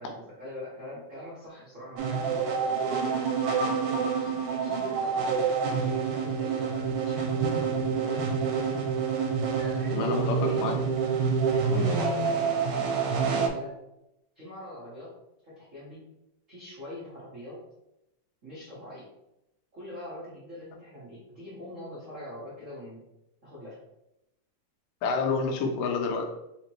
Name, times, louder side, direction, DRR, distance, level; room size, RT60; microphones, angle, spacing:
voice 1, 0.0-3.2 3.6-8.5 9.5-10.7 11.3-13.7 14.3-15.1 15.4-16.0 16.5-17.6 18.4-19.1 19.7-23.0 23.4-23.8, left 1 dB, 65° right, -10 dB, 0.7 m, -44 dB
sound 1, 2.0-13.5, right 5 dB, 85° right, 2.2 m, -27 dB
voice 2, 9.9-10.8 11.7-12.0 25.0-26.3, left 4 dB, 85° left, 3 dB, 2.3 m, -28 dB
5.1 x 2.9 x 3.0 m, 0.87 s
omnidirectional pair, 3.7 m